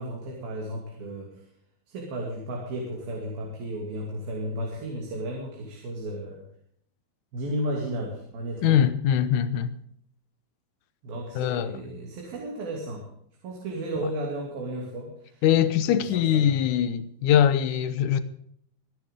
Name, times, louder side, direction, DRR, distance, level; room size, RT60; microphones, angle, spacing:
voice 1, 0.0-1.4 1.9-6.4 7.3-8.8 11.0-13.1 13.4-15.4 15.9-16.6, right 1 dB, 70° right, 4.6 m, -34 dB
voice 2, 8.6-9.7 11.4-11.8 15.4-18.2, left 10 dB, 70° left, 2.1 m, -22 dB
25.5 x 10.5 x 3.8 m
omnidirectional pair, 4.4 m